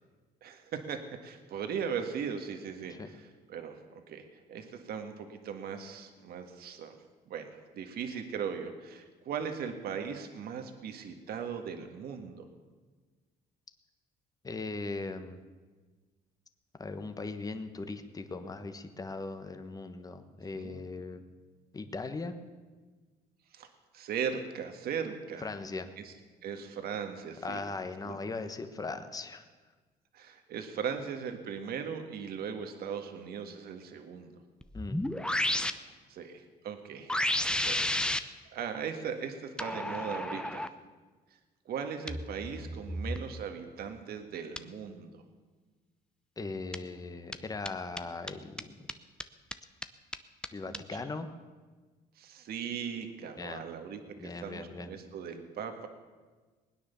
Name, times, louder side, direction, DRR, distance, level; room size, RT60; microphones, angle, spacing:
voice 1, 0.4-7.0 7.3-12.4 20.6-20.8 23.5-23.7 23.9-25.5 26.0-26.1 26.4-27.6 28.1-28.2 30.1-34.3 35.7-37.2 37.6-37.8 38.2-40.7 41.7-45.2 50.7-51.0 52.2-55.9, right 7 dB, 65° right, 6 dB, 1.7 m, -38 dB
voice 2, 14.4-15.4 16.8-21.2 21.7-22.3 25.4-25.9 27.4-29.4 34.7-35.0 46.4-48.7 50.5-51.3 53.4-53.7 54.2-55.0, left 3 dB, 20° left, 8 dB, 1.2 m, -39 dB
sound 1, 34.6-35.7 37.1-38.2 39.6-40.7 42.1-43.2 44.6-44.7 46.7-46.8 47.3-47.4 47.7-47.8 48.0-48.1 48.3-48.4 48.6-48.7 48.9-49.0 49.2-49.3 49.5-49.6 49.8-49.9 50.1-50.2 50.4-50.5 50.7-50.8, left 1 dB, 5° left, 0.7 m, -31 dB
20.5 x 9.7 x 6.9 m, 1.4 s
cardioid pair, 110°, 17 cm